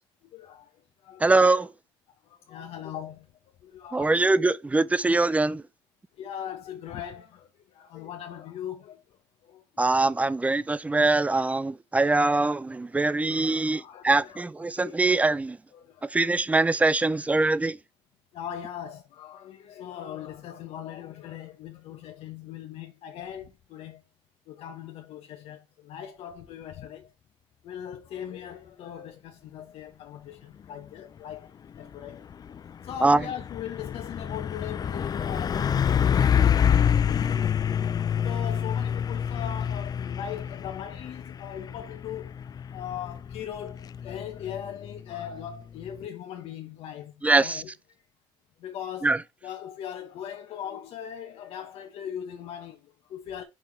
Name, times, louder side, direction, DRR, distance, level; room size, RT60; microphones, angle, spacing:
voice 1, 0.3-0.7 1.0-1.3 2.2-3.3 3.6-4.3 5.1-5.2 6.2-9.6 10.0-10.1 13.1-15.3 15.7-16.2 18.3-24.0 24.5-27.1 27.6-32.2 32.8-37.5 38.2-42.3 42.7-47.7 48.6-49.2 49.4-53.4, left 10 dB, 70° left, 1.0 m, -40 dB
voice 2, 1.2-1.7 3.9-5.6 9.8-15.6 16.1-17.8 33.0-33.2 47.2-47.6 49.0-49.2, right 3 dB, 15° right, 0.5 m, -23 dB
Truck, 31.8-46.1, left 8 dB, 40° left, 0.4 m, -27 dB
5.5 x 4.7 x 4.5 m
supercardioid pair, 80°, 11 cm